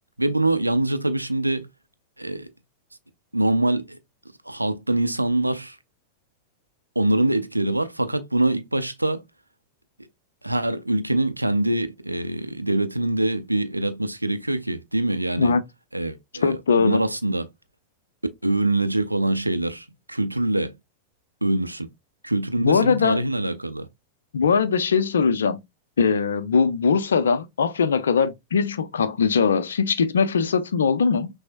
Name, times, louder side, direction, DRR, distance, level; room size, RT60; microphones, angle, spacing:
voice 1, 0.2-1.7 2.2-2.5 3.3-4.0 4.5-5.8 7.0-9.2 10.4-15.5 15.9-17.5 18.4-20.7 21.4-21.9 22.2-23.9, right 1 dB, 85° right, 0.4 m, -24 dB
voice 2, 16.4-17.0 22.6-23.2 24.3-25.6 26.0-31.3, left 5 dB, 65° left, 0.5 m, -21 dB
6.0 x 2.0 x 2.5 m
figure-of-eight pair, 90°, 0 cm